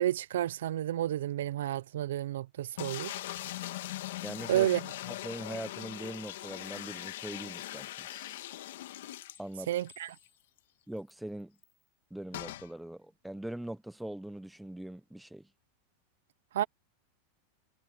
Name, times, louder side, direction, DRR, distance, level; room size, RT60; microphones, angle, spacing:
voice 1, 0.0-3.1 4.5-4.8 9.7-10.1 16.5-16.7, right 12 dB, 90° right, 0.5 m, -30 dB
sound 1, 2.8-9.9 10.3-10.4 10.6-10.7 12.3-12.7, left 15 dB, 75° left, 1.4 m, -41 dB
voice 2, 4.2-4.7 5.1-8.1 9.4-9.7 10.9-11.6 12.1-15.5, right 1 dB, ahead, 0.7 m, -41 dB
sound 2, 7.6-7.7 8.1-8.7 9.4-9.5 9.9-10.4 11.1-11.2 11.6-11.8, left 6 dB, 15° left, 5.9 m, -58 dB
supercardioid pair, 155°, 0 cm